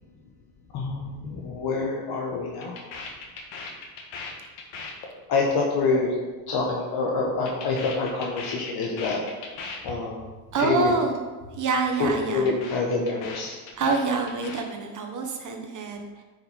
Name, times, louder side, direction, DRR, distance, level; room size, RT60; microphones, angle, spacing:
voice 1, 0.7-2.8 5.3-6.1 6.5-9.2 9.5-10.2 10.6-10.9 12.0-13.6, left 3 dB, 55° left, -1 dB, 1.4 m, -26 dB
sound 1, 1.7-1.9 2.1-6.7 7.0-9.9 10.2-10.4 10.6-11.0 11.2-11.6 11.9-14.6, left 4 dB, 70° left, 1.6 m, -39 dB
voice 2, 10.5-11.2 11.5-12.5 13.8-16.2, right 3 dB, 40° right, 3 dB, 1.4 m, -26 dB
9.6 x 5.7 x 3.7 m, 1.3 s
supercardioid pair, 105°, 46 cm